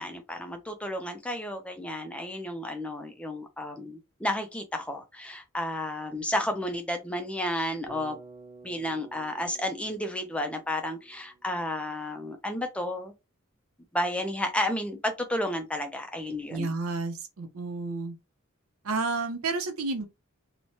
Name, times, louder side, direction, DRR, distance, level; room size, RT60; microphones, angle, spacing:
voice 1, 0.0-8.2 8.6-13.1 13.9-16.7, left 1 dB, 5° left, 0.3 m, -32 dB
Bass guitar, 7.9-12.0, right 3 dB, 15° right, 0.7 m, -51 dB
voice 2, 16.5-18.1 18.8-20.0, right 3 dB, 85° right, 0.6 m, -31 dB
3.0 x 2.1 x 2.6 m
head